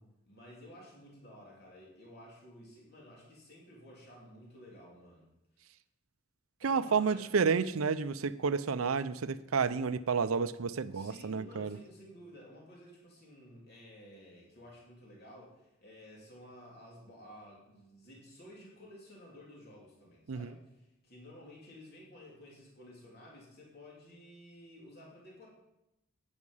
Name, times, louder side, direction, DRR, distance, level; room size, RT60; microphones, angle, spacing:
voice 1, 0.3-5.3 6.6-7.3 10.9-25.5, left 1 dB, 50° left, -3 dB, 3.1 m, -53 dB
voice 2, 6.6-11.8 20.3-20.5, right 5 dB, 85° right, 14 dB, 0.6 m, -30 dB
9.7 x 9.6 x 5.5 m, 0.90 s
head